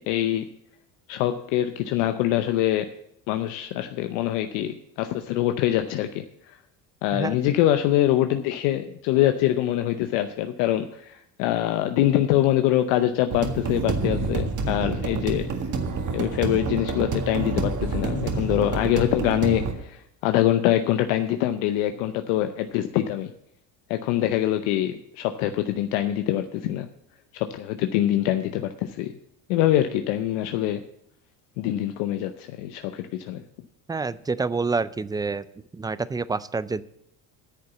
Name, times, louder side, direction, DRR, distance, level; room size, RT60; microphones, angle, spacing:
voice 1, 0.1-0.4 1.1-2.9 3.3-6.6 7.0-15.5 16.1-23.3 23.9-26.9 27.3-29.1 29.5-30.8 31.6-33.4, left 13 dB, 80° left, 8 dB, 0.8 m, -24 dB
sound 1, 13.3-19.7, right 4 dB, 45° right, 1.8 m, -28 dB
voice 2, 33.9-35.5 35.7-36.8, right 4 dB, 10° right, 17 dB, 0.3 m, -27 dB
9.6 x 6.7 x 8.2 m, 0.74 s
supercardioid pair, 90°, 41 cm